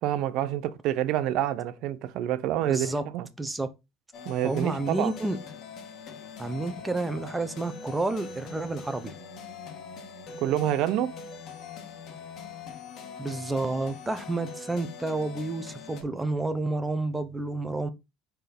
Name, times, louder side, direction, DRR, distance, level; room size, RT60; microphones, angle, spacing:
voice 1, 0.0-3.3 4.3-5.1 10.4-11.1, right 12 dB, 65° right, 0.8 m, -27 dB
voice 2, 2.6-3.0 3.4-3.7 4.4-5.4 6.4-9.1 13.2-17.9, right 2 dB, 10° right, 0.9 m, -30 dB
sound 1, 4.1-16.0, left 5 dB, 50° left, 2.5 m, -43 dB
5.1 x 4.6 x 5.9 m
cardioid pair, 120°, 0 cm